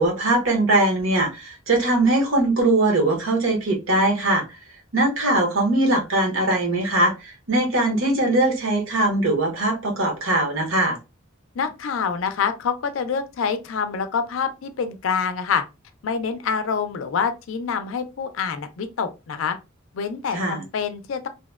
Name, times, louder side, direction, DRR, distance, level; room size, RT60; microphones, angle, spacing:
voice 1, 0.0-4.6 4.9-11.0 20.3-20.6, right 2 dB, 75° right, 0.9 m, -21 dB
voice 2, 11.6-15.6 16.0-19.6 19.9-21.3, left 6 dB, 70° left, 0.4 m, -26 dB
2.7 x 2.1 x 2.2 m
head